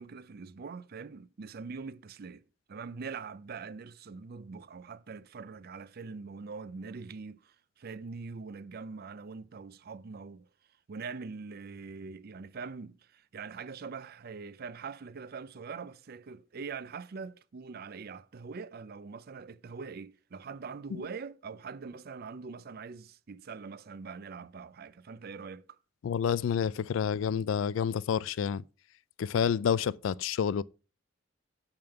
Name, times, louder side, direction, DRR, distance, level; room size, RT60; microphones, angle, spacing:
voice 1, 0.0-10.5 10.9-25.8, right 5 dB, 50° right, 0.5 m, -43 dB
voice 2, 26.0-28.6 29.2-30.6, left 7 dB, 75° left, 0.3 m, -29 dB
8.8 x 3.6 x 6.8 m
head